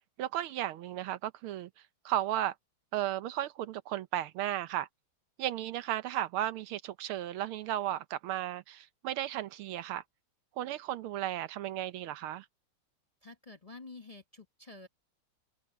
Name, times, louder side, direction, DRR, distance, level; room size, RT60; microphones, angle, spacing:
voice 1, 0.2-1.7 2.0-2.5 2.9-4.9 5.4-10.0 10.6-12.4, right 12 dB, 85° right, 1.7 m, -34 dB
voice 2, 13.2-14.9, left 3 dB, 25° left, 1.0 m, -49 dB
omnidirectional pair, 2.3 m